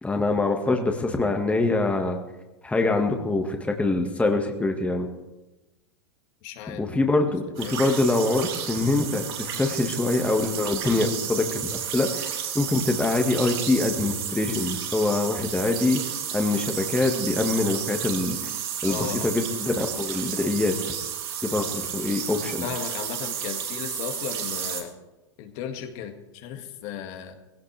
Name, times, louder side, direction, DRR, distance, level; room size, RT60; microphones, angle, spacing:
voice 1, 0.0-2.2 2.6-5.1 6.7-16.0 16.3-18.4 18.8-20.9 21.4-22.7, left 2 dB, 10° left, 3 dB, 1.8 m, -24 dB
voice 2, 6.4-6.8 7.6-7.8 18.9-19.3 22.6-24.9 25.4-27.3, left 9 dB, 50° left, 4 dB, 2.1 m, -35 dB
sound 1, 7.6-24.8, right 9 dB, 60° right, 3.4 m, -32 dB
20.0 x 17.0 x 3.5 m, 1.0 s
hypercardioid pair, 95°, 14 cm